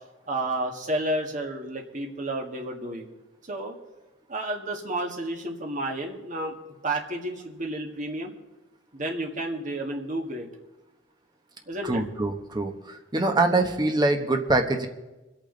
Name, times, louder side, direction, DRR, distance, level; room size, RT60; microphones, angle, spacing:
voice 1, 0.3-3.1 3.5-3.8 4.3-6.5 6.8-8.3 8.9-10.5 11.7-12.0, right 1 dB, 40° right, 2 dB, 1.8 m, -31 dB
voice 2, 11.8-14.9, right 2 dB, 20° right, 5 dB, 1.2 m, -24 dB
25.5 x 8.6 x 4.0 m, 1.1 s
head